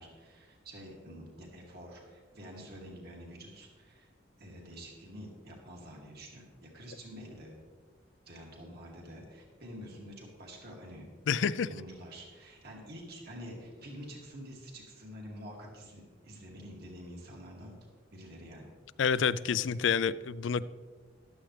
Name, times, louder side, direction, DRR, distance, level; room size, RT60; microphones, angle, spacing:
voice 1, 0.0-4.1 4.4-7.5 8.3-11.1 11.6-17.8 18.1-18.7, equal, 60° right, -1 dB, 2.4 m, -48 dB
voice 2, 11.3-11.7 19.0-20.6, left 6 dB, 80° left, 17 dB, 0.4 m, -28 dB
14.5 x 12.0 x 3.3 m, 1.5 s
head